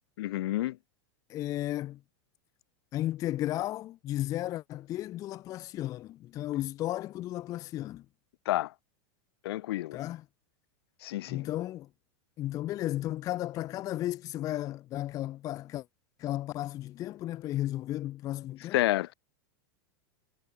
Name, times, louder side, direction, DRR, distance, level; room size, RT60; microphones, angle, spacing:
voice 1, 0.2-0.8 8.5-8.7 9.4-10.0 11.0-11.5 18.7-19.1, left 16 dB, 70° left, 0.9 m, -29 dB
voice 2, 1.3-2.0 2.9-8.1 9.9-10.2 11.3-11.9 12.4-15.9 16.2-18.8, left 14 dB, 25° left, 0.4 m, -34 dB
supercardioid pair, 150°, 13 cm